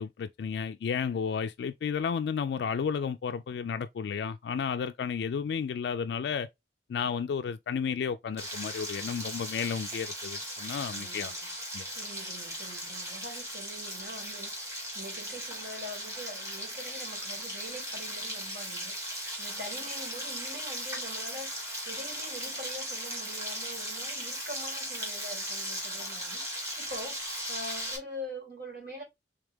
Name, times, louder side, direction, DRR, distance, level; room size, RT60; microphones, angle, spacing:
voice 1, 0.0-6.5 6.9-11.3 11.7-11.9, left 6 dB, 70° left, 0.3 m, -32 dB
Frying (food), 8.4-28.0, equal, 15° right, 1.5 m, -37 dB
voice 2, 10.9-11.6 11.9-29.0, equal, 65° right, 2.9 m, -44 dB
3.4 x 3.4 x 3.5 m
head